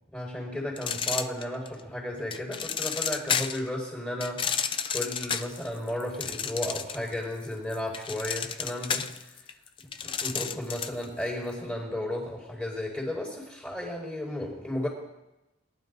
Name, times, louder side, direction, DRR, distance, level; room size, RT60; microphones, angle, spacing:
voice 1, 0.1-9.1 10.0-14.9, left 1 dB, 5° left, -3 dB, 4.8 m, -34 dB
sound 1, 0.8-1.8 2.3-3.7 4.2-7.1 7.4-11.0, left 7 dB, 25° left, 0.3 m, -31 dB
22.5 x 11.5 x 2.7 m, 0.95 s
head